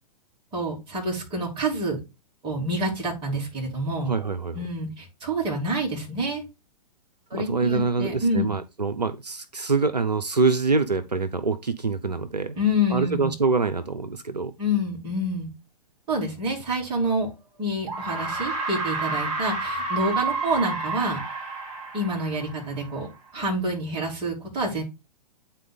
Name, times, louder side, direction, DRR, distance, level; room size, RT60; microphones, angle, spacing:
voice 1, 0.5-2.0 2.4-4.1 4.5-6.4 7.3-8.5 12.5-13.3 14.6-15.5 16.1-17.3 17.6-21.2 21.9-23.1 23.3-24.8, equal, 25° right, 3.4 m, -27 dB
voice 2, 4.0-4.6 7.3-12.6 12.9-14.5, right 4 dB, 85° right, 0.6 m, -25 dB
sound 1, 17.0-17.1 17.9-23.1, right 3 dB, 45° right, 5.2 m, -30 dB
9.1 x 4.1 x 3.8 m
figure-of-eight pair, 110°, 20 cm